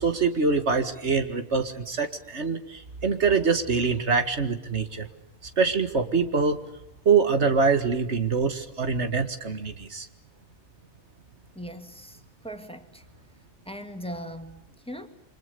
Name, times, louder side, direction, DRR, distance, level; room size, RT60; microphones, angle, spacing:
voice 1, 0.0-5.1 5.6-6.6 7.1-10.1, right 5 dB, 90° right, 2.2 m, -24 dB
voice 2, 11.5-13.0 13.6-15.1, equal, 5° left, 2.2 m, -39 dB
29.0 x 25.0 x 6.9 m
omnidirectional pair, 1.1 m